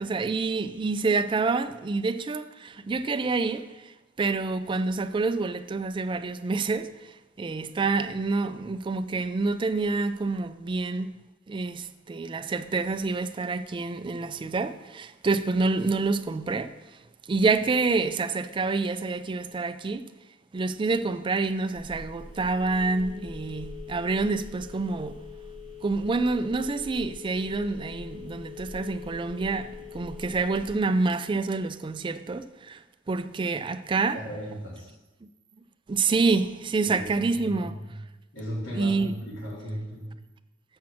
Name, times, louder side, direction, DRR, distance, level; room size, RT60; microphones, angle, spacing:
voice 1, 0.0-3.9 4.2-6.9 7.4-11.2 11.5-16.7 17.3-20.0 20.5-25.2 25.8-32.8 33.1-34.2 35.9-37.8 38.7-39.2, right 3 dB, 25° right, 0.3 m, -27 dB
Telephone, 21.8-30.7, left 4 dB, 40° left, 1.5 m, -43 dB
voice 2, 34.1-34.9 36.8-37.9 38.3-40.1, equal, 75° left, 2.9 m, -36 dB
7.2 x 5.9 x 6.2 m
head